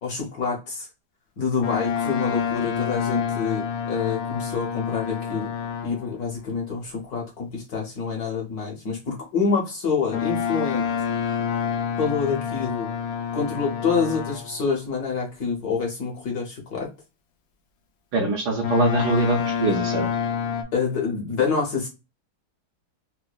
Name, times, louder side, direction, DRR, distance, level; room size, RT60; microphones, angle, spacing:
voice 1, 0.0-0.9 1.4-5.5 5.8-10.9 12.0-12.9 13.3-16.9 20.7-21.9, left 5 dB, 60° left, -1 dB, 1.3 m, -27 dB
Boat Water vehicle, 1.6-6.1 10.1-14.6 18.6-20.6, left 7 dB, 80° left, 0.7 m, -28 dB
voice 2, 18.1-20.1, right 3 dB, 65° right, 1 dB, 1.0 m, -23 dB
4.6 x 2.1 x 2.3 m, 0.28 s
omnidirectional pair, 2.2 m